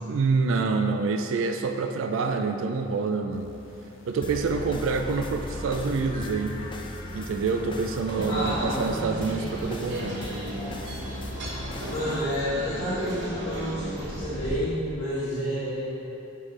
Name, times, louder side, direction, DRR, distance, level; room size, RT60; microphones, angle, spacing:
voice 1, 0.0-3.5 4.1-6.6 7.1-10.2, right 4 dB, 90° right, 6 dB, 0.4 m, -27 dB
sound 1, 3.3-11.8, left 2 dB, 85° left, 0.5 m, -49 dB
sound 2, 4.2-12.2, left 1 dB, 25° left, 0.4 m, -37 dB
voice 2, 8.2-9.4 11.9-15.9, equal, 65° left, -11 dB, 1.3 m, -30 dB
sound 3, 8.2-14.6, right 1 dB, 65° right, 0.9 m, -35 dB
6.4 x 5.5 x 3.2 m, 2.7 s
head